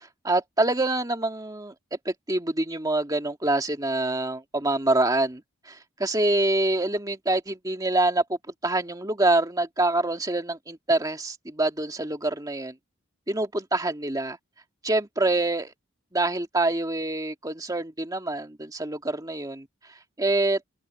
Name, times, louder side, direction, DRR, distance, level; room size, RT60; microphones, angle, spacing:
voice 1, 0.2-1.7 2.1-8.4 8.6-12.7 13.3-14.4 14.8-15.7 16.1-19.7 20.2-20.6, right 2 dB, 20° right, 1.9 m, -26 dB
open air
head